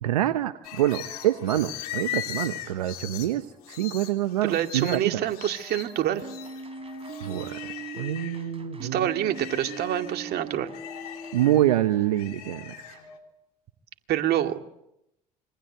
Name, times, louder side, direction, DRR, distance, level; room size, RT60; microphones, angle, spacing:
voice 1, 0.0-5.2 7.2-9.1 11.3-13.0, right 13 dB, 90° right, 11 dB, 0.9 m, -26 dB
sound 1, 0.6-8.5 8.9-13.2, left 12 dB, 85° left, 3.4 m, -40 dB
voice 2, 4.4-6.2 8.8-10.7 14.1-14.6, right 11 dB, 60° right, 6 dB, 2.3 m, -26 dB
sound 2, 6.2-11.4, right 3 dB, 30° right, 3.6 m, -40 dB
27.0 x 23.0 x 8.0 m, 0.83 s
hypercardioid pair, 60°, 19 cm